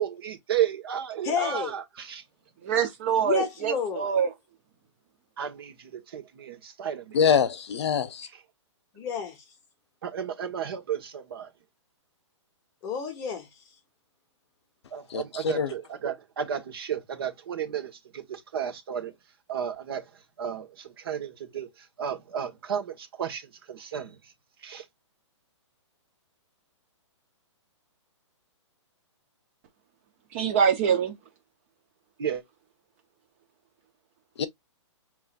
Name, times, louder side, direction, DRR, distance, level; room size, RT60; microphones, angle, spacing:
voice 1, 0.0-2.2 5.4-7.2 8.2-8.4 10.0-11.5 14.9-19.1 19.5-20.0 20.4-24.2 24.6-24.8 32.2-32.4, right 9 dB, 50° right, 1.4 m, -33 dB
voice 2, 1.2-1.7 3.2-4.1 8.9-9.4 12.8-13.5, left 7 dB, 15° left, 1.0 m, -30 dB
voice 3, 2.6-4.3 30.3-31.2, right 7 dB, 25° right, 0.7 m, -24 dB
voice 4, 7.1-8.3 15.1-15.7 34.4-34.5, left 7 dB, 60° left, 0.8 m, -24 dB
5.5 x 3.0 x 2.4 m
hypercardioid pair, 170°, 16 cm